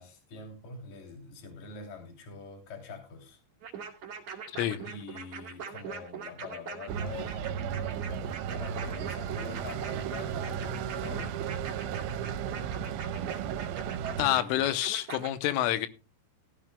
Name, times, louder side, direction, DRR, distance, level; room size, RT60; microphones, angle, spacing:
voice 1, 0.0-3.4 4.8-7.5 8.5-11.5 14.2-14.6, left 3 dB, 40° left, 3.6 m, -44 dB
sound 1, 3.6-15.3, right 6 dB, 45° right, 2.4 m, -42 dB
voice 2, 4.5-4.9 14.2-15.9, left 13 dB, 80° left, 3.2 m, -28 dB
sound 2, 6.9-14.3, right 8 dB, 80° right, 3.0 m, -35 dB
17.0 x 14.0 x 2.2 m
omnidirectional pair, 5.9 m